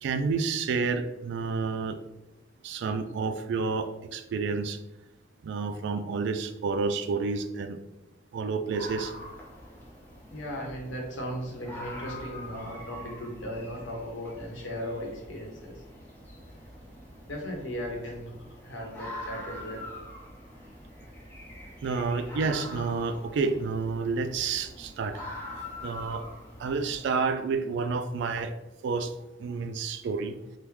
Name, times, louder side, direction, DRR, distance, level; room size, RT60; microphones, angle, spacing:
voice 1, 0.0-2.0 2.6-4.8 5.4-7.8 8.3-9.1 21.8-25.2 25.8-26.2 26.6-28.5 28.8-29.1 29.4-30.4, right 4 dB, 65° right, 10 dB, 0.3 m, -29 dB
sound 1, 8.7-27.0, left 1 dB, 10° left, 0.8 m, -44 dB
voice 2, 10.3-15.8 17.3-18.4 18.6-19.8, equal, 70° left, 0 dB, 0.9 m, -37 dB
3.5 x 2.1 x 3.0 m, 0.97 s
head